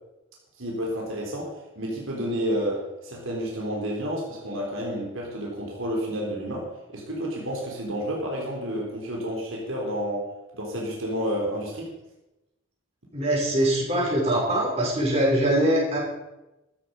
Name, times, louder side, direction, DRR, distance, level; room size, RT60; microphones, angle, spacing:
voice 1, 0.6-10.3 10.5-11.9, equal, 75° right, -2 dB, 3.9 m, -30 dB
voice 2, 13.1-16.0, right 1 dB, 30° right, -5 dB, 6.0 m, -23 dB
14.5 x 13.0 x 5.3 m, 0.99 s
head